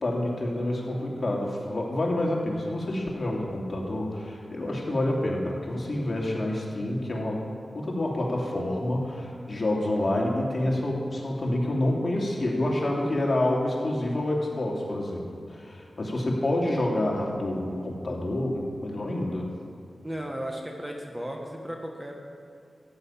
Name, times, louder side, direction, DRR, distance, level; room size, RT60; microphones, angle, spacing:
voice 1, 0.0-7.4 7.7-15.2 15.5-19.5, left 1 dB, 45° left, -2 dB, 2.7 m, -28 dB
voice 2, 20.0-22.2, equal, 15° right, 1 dB, 1.4 m, -35 dB
14.5 x 9.1 x 5.8 m, 2.5 s
wide cardioid pair, 85°, 0 cm